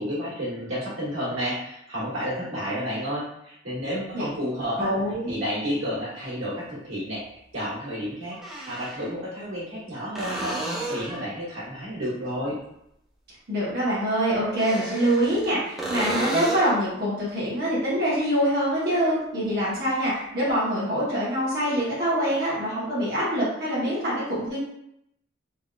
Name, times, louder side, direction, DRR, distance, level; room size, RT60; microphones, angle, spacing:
voice 1, 0.0-4.9 5.3-8.4 8.7-12.6, equal, 85° right, -8 dB, 1.4 m, -31 dB
sound 1, 4.8-4.9 7.0-7.1 8.3-9.1 10.1-11.3 14.4-15.5 15.8-16.8 20.5-20.6, right 1 dB, ahead, 0.5 m, -32 dB
voice 2, 4.8-5.4 13.5-24.6, equal, 50° right, -9 dB, 1.0 m, -25 dB
3.4 x 2.4 x 2.3 m, 0.79 s
head